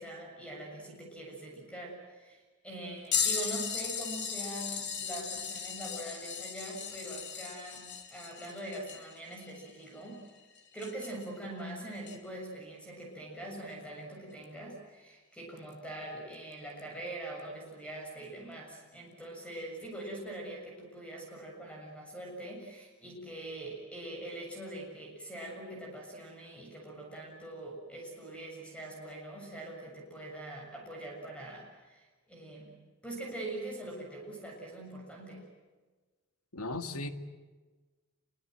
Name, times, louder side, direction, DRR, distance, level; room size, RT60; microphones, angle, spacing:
voice 1, 0.0-10.2 10.7-32.7 33.0-35.4, right 1 dB, 5° left, 0 dB, 7.1 m, -43 dB
sound 1, 3.1-11.3 12.0-12.2 14.4-14.5 15.6-15.7 16.8-16.9, left 7 dB, 50° left, 2.9 m, -37 dB
voice 2, 36.5-37.1, left 2 dB, 90° left, 8 dB, 2.0 m, -36 dB
28.0 x 24.5 x 7.9 m, 1.3 s
head